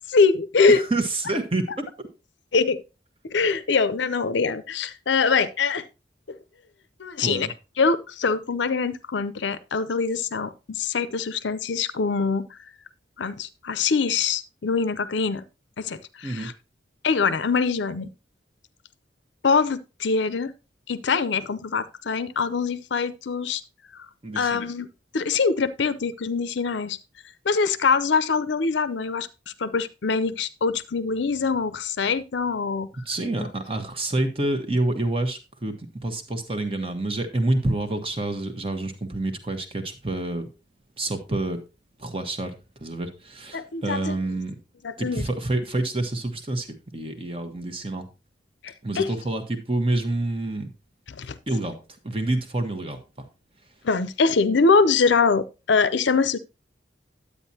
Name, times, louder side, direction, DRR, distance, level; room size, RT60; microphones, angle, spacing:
voice 1, 0.1-0.8 2.5-2.8 3.2-5.8 7.0-7.5 7.8-12.6 13.2-15.4 15.8-16.5 17.0-18.1 19.4-20.5 20.9-23.6 24.4-24.9 25.1-27.0 27.4-29.3 29.6-32.9 33.4-33.5 43.5-44.1 44.8-45.2 48.6-49.1 51.1-51.4 53.8-56.4, left 4 dB, 75° left, 0.6 m, -23 dB
voice 2, 0.7-2.1 7.2-7.5 16.2-16.5 24.2-24.7 33.0-40.5 41.0-41.6 42.0-44.6 45.0-48.1 48.8-50.7 51.5-53.3, right 2 dB, 30° right, 1.1 m, -28 dB
9.9 x 8.4 x 2.8 m
head